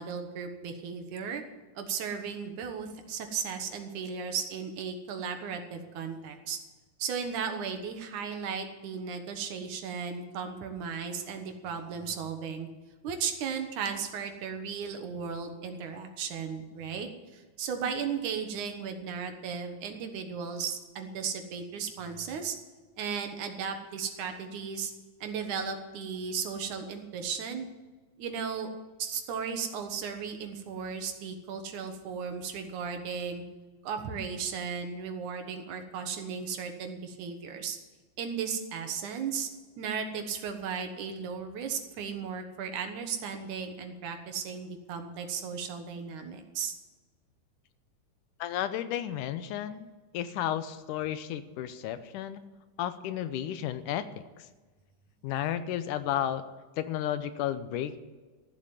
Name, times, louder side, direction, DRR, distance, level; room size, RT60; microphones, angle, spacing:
voice 1, 0.0-1.4 1.7-6.6 7.0-12.7 13.0-22.6 23.0-24.9 25.2-27.7 28.2-28.7 29.0-33.4 33.8-37.8 38.2-39.5 39.8-46.7, right 6 dB, 75° right, 6 dB, 2.7 m, -35 dB
voice 2, 48.4-49.9 50.1-52.4 52.8-54.5 55.2-56.4 56.8-58.1, left 11 dB, 85° left, 12 dB, 2.3 m, -33 dB
14.0 x 7.8 x 9.0 m, 1.3 s
omnidirectional pair, 3.6 m